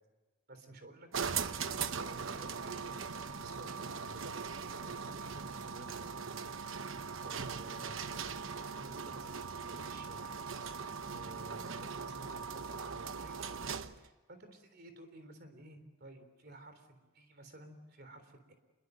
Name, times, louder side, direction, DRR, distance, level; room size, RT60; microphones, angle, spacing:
voice 1, 0.5-1.1 1.4-1.7 2.2-6.8 7.2-8.4 8.7-10.4 11.1-18.5, right 1 dB, 50° right, 8 dB, 3.7 m, -54 dB
sound 1, 1.1-14.1, right 6 dB, 75° right, 1.0 m, -40 dB
27.5 x 22.0 x 8.1 m, 1.2 s
head